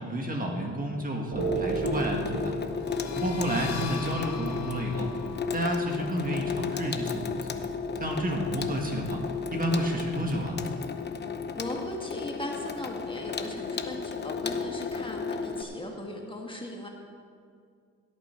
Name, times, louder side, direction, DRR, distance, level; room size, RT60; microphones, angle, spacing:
voice 1, 0.0-2.5 3.1-5.1 5.5-7.4 8.0-9.2 9.5-10.6, right 1 dB, 30° right, 1 dB, 1.7 m, -30 dB
sound 1, 1.3-11.5, right 4 dB, 65° right, 2.7 m, -38 dB
Water tap faucet / Sink (filling or washing), 1.4-15.6, left 5 dB, 35° left, 0.8 m, -34 dB
sound 2, 2.7-8.2, left 8 dB, 65° left, 0.9 m, -44 dB
voice 2, 11.5-16.9, left 1 dB, 15° left, 0 dB, 1.8 m, -38 dB
17.0 x 8.5 x 4.5 m, 2.2 s
cardioid pair, 90°, 30 cm